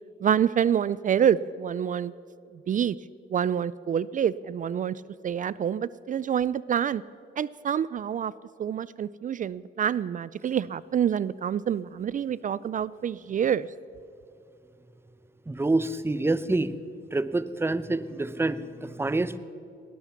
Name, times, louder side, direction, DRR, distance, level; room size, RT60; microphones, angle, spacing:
voice 1, 0.2-2.1 2.7-3.0 3.3-7.0 7.4-8.3 8.6-13.7, right 8 dB, 40° right, 19 dB, 0.4 m, -27 dB
voice 2, 15.5-16.7 17.1-19.4, right 2 dB, 10° right, 14 dB, 0.7 m, -27 dB
19.0 x 12.0 x 5.8 m, 2.5 s
cardioid pair, 90°, 20 cm